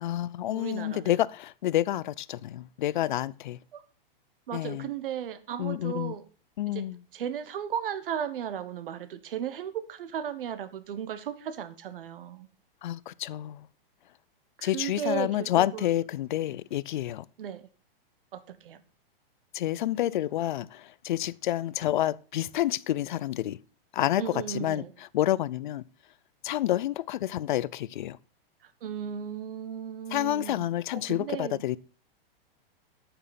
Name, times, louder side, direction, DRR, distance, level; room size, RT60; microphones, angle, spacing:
voice 1, 0.0-3.6 4.5-4.9 5.6-6.2 6.6-7.0 12.8-13.6 14.6-17.2 19.5-23.6 23.9-24.8 25.1-25.8 26.4-28.2 30.1-31.8, left 13 dB, 55° left, 0.5 m, -29 dB
voice 2, 0.5-1.2 3.7-3.8 4.5-6.2 6.7-6.8 7.1-12.5 14.6-15.9 17.4-17.6 18.3-18.8 24.0-24.9 28.6-30.7 30.9-31.6, right 9 dB, 65° right, 1.3 m, -35 dB
9.0 x 8.8 x 5.2 m
supercardioid pair, 170°, 30 cm